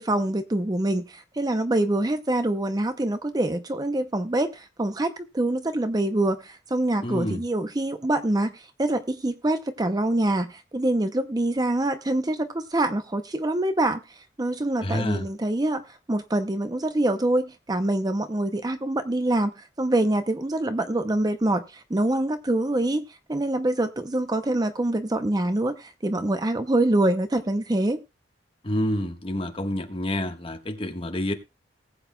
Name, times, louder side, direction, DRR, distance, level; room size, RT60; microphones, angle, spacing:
voice 1, 0.0-14.0 14.4-15.8 16.1-23.0 23.3-28.0, right 1 dB, 20° right, 0.6 m, -25 dB
voice 2, 7.0-7.4 14.8-15.3 28.6-31.3, left 1 dB, 30° left, 1.4 m, -28 dB
19.5 x 8.1 x 2.2 m
head